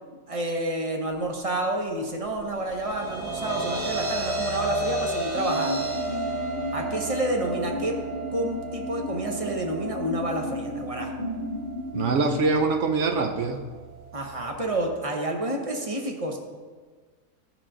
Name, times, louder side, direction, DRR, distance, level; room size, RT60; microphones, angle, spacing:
voice 1, 0.3-5.9 6.7-7.9 8.3-11.1 14.1-16.4, right 1 dB, 35° right, 2 dB, 0.6 m, -29 dB
sound 1, 2.5-14.8, right 2 dB, 80° right, 2.3 m, -33 dB
sound 2, 5.3-12.6, left 2 dB, 15° left, 1.8 m, -34 dB
voice 2, 11.9-13.6, right 3 dB, 60° right, 6 dB, 0.8 m, -24 dB
12.0 x 4.8 x 3.7 m, 1.5 s
omnidirectional pair, 1.7 m